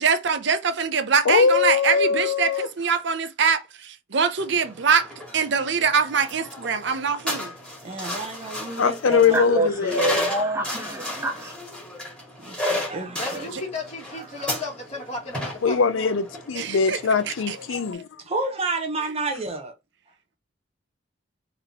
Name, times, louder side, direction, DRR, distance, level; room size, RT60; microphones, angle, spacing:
voice 1, 0.0-5.1 5.3-7.5 16.5-17.0 17.5-17.8, right 6 dB, 60° right, 0.6 m, -23 dB
voice 2, 1.3-2.7 8.8-10.2 15.6-18.1, left 5 dB, 75° left, 0.5 m, -21 dB
sound 1, 4.4-17.9, left 1 dB, 5° left, 2.0 m, -34 dB
voice 3, 7.8-9.5 12.4-13.5 14.1-14.5 18.2-19.7, right 2 dB, 30° right, 1.0 m, -31 dB
voice 4, 9.1-11.5, right 2 dB, 15° right, 0.6 m, -26 dB
voice 5, 13.1-16.1, left 3 dB, 30° left, 2.0 m, -35 dB
3.9 x 3.5 x 2.9 m
head